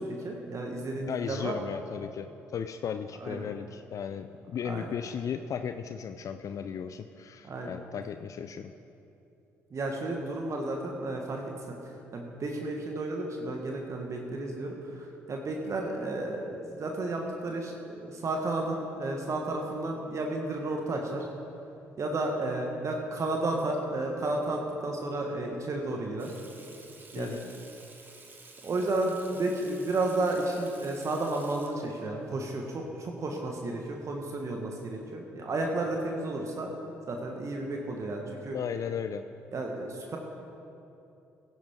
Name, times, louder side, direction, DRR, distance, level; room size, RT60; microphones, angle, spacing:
voice 1, 0.0-1.6 3.2-3.5 4.6-4.9 7.4-7.7 9.7-21.3 22.0-26.3 27.1-27.4 28.6-36.7 37.1-38.6 39.5-40.2, right 2 dB, 45° right, 1 dB, 1.4 m, -32 dB
voice 2, 1.1-8.7 27.2-27.4 38.5-39.2, left 7 dB, 50° left, 9 dB, 0.4 m, -36 dB
Water tap faucet / Sink (filling or washing), 26.2-32.1, right 3 dB, 30° right, 1.6 m, -52 dB
15.5 x 10.5 x 3.7 m, 2.8 s
hypercardioid pair, 45°, 7 cm